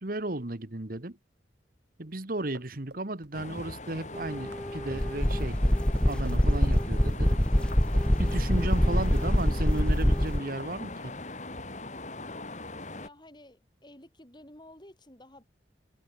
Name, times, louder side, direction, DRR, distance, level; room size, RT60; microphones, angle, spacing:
voice 1, 0.0-1.2 2.0-5.6 6.0-7.4 8.2-11.1, right 2 dB, 50° right, 1.6 m, -34 dB
sound 1, 2.4-8.9 9.2-10.3 10.6-10.8, right 2 dB, 75° right, 5.4 m, -49 dB
sound 2, 3.3-13.1, left 2 dB, 40° left, 4.2 m, -40 dB
sound 3, 4.1-10.4, equal, 5° left, 0.5 m, -25 dB
voice 2, 12.9-15.4, left 1 dB, 25° left, 6.1 m, -52 dB
head